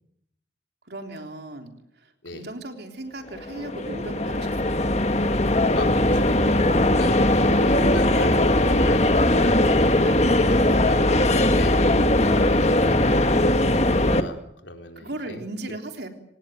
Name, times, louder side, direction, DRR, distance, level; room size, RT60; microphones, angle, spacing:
voice 1, 0.9-4.8 8.1-8.5 10.0-10.3 12.2-12.5 15.0-16.1, right 1 dB, 60° right, 4 dB, 3.5 m, -37 dB
sound 1, 3.3-14.2, left 1 dB, 35° left, 1.6 m, -20 dB
voice 2, 5.7-6.4 6.9-9.6 10.2-11.8 12.3-15.4, left 1 dB, 75° left, 4 dB, 4.1 m, -37 dB
26.5 x 18.5 x 9.1 m, 0.76 s
head